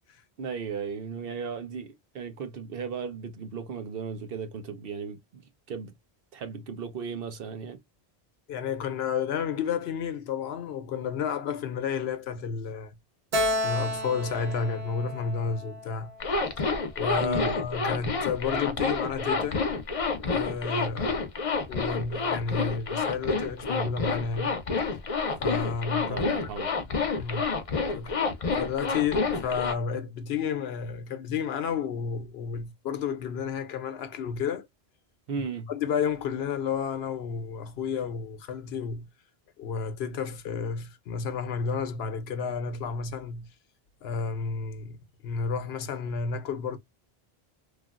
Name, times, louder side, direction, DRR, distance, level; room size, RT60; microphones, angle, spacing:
voice 1, 0.4-5.4 5.7-5.9 6.3-7.8 17.2-17.6 26.0-26.7 35.3-35.7, right 5 dB, 65° right, 0.8 m, -36 dB
voice 2, 8.5-12.9 13.6-16.1 17.0-19.6 20.3-21.2 21.7-24.6 25.4-26.3 27.2-27.4 28.0-28.1 28.6-34.7 35.7-39.1 39.6-43.5 44.0-45.0 45.2-46.8, left 6 dB, 80° left, 0.9 m, -31 dB
Keyboard (musical), 13.3-16.8, left 1 dB, 90° right, 1.2 m, -32 dB
Zipper (clothing), 16.2-29.7, left 4 dB, 40° left, 0.6 m, -28 dB
3.3 x 2.3 x 2.3 m
omnidirectional pair, 1.1 m